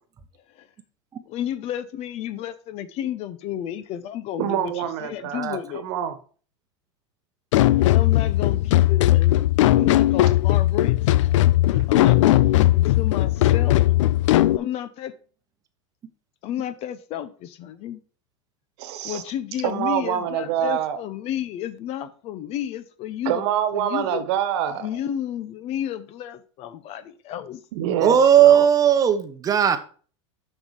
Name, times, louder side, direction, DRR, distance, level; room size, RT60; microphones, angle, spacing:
voice 1, 1.3-5.8 7.8-9.4 9.7-11.0 11.9-14.0 14.6-15.1 16.4-18.0 19.0-23.4 23.7-24.2 24.8-27.6, left 10 dB, 40° left, 14 dB, 0.7 m, -32 dB
voice 2, 4.4-6.2 11.7-11.8 18.8-19.2 19.6-21.0 23.2-24.9 27.7-28.7, right 10 dB, 60° right, 10 dB, 1.4 m, -26 dB
sound 1, 7.5-14.6, left 15 dB, 75° left, 0.5 m, -18 dB
voice 3, 28.0-29.8, right 9 dB, 20° right, 9 dB, 1.0 m, -16 dB
6.9 x 5.5 x 4.9 m, 0.41 s
supercardioid pair, 125°, 16 cm